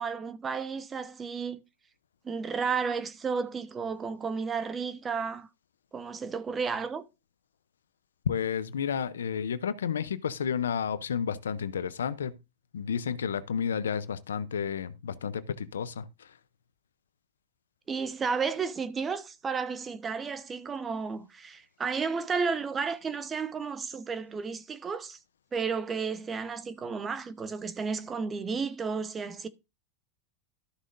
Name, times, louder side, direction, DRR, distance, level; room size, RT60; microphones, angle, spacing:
voice 1, 0.0-1.6 2.2-5.5 5.9-7.0 17.9-25.2 25.5-29.5, right 5 dB, 25° right, 1.0 m, -32 dB
voice 2, 8.3-12.4 12.7-16.3, left 7 dB, 85° left, 0.6 m, -31 dB
13.0 x 6.3 x 2.5 m
hypercardioid pair, 95°, 0 cm